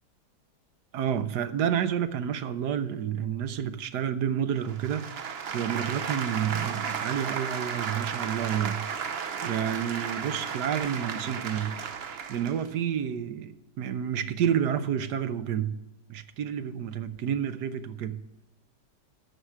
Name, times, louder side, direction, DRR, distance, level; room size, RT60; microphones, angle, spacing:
voice 1, 0.9-8.9 9.4-11.7 12.3-15.8 16.1-18.2, right 9 dB, 75° right, 11 dB, 1.3 m, -30 dB
sound 1, 4.7-12.7, right 6 dB, 50° right, 0.8 m, -34 dB
13.0 x 4.9 x 7.7 m, 0.98 s
omnidirectional pair, 1.8 m